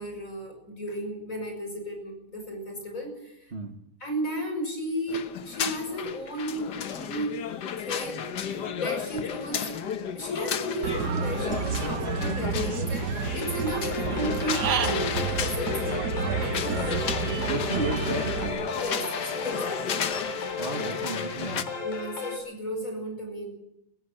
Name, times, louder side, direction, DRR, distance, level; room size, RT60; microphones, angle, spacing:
voice 1, 0.0-3.4 4.0-7.3 7.8-9.8 10.1-16.1 16.4-17.3 18.8-19.9 21.8-23.5, equal, 25° left, 4 dB, 6.5 m, -34 dB
sound 1, 5.1-21.6, left 8 dB, 75° left, 0.9 m, -33 dB
Human voice / Bird, 10.8-18.5, right 6 dB, 85° right, 0.8 m, -30 dB
sound 2, 13.2-22.4, left 3 dB, 90° left, 5.1 m, -35 dB
voice 2, 17.5-18.7 20.6-21.7, right 3 dB, 35° right, 5 dB, 1.1 m, -33 dB
18.0 x 16.0 x 8.9 m, 0.79 s
omnidirectional pair, 3.3 m